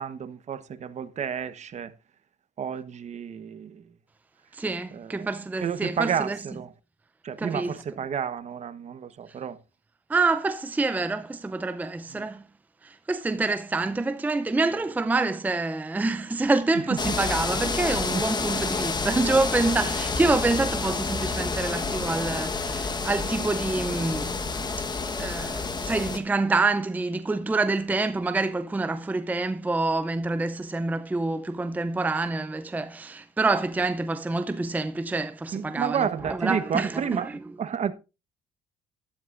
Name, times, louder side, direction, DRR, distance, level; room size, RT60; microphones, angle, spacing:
voice 1, 0.0-1.9 2.6-3.8 4.9-5.3 5.6-6.7 7.2-9.6 12.1-12.3 17.1-17.2 18.0-18.2 35.5-37.3 37.6-37.9, right 8 dB, 45° right, 1.1 m, -31 dB
voice 2, 4.5-6.4 7.4-7.8 10.1-12.4 12.8-24.3 25.2-37.4, right 3 dB, 10° right, 0.6 m, -27 dB
sound 1, 17.0-26.2, left 4 dB, 25° left, 1.2 m, -29 dB
13.0 x 12.5 x 2.5 m
cardioid pair, 110°, 17 cm